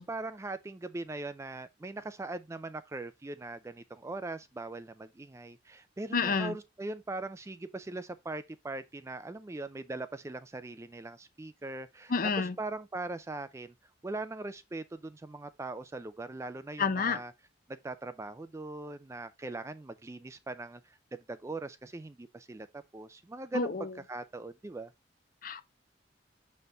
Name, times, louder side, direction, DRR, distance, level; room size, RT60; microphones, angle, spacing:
voice 1, 0.0-13.7 14.0-17.3 17.7-24.9, right 2 dB, 15° right, 0.3 m, -40 dB
voice 2, 6.1-6.5 12.1-12.5 16.8-17.2 23.5-23.9 25.4-25.6, left 4 dB, 45° left, 0.6 m, -29 dB
6.6 x 4.3 x 3.4 m
head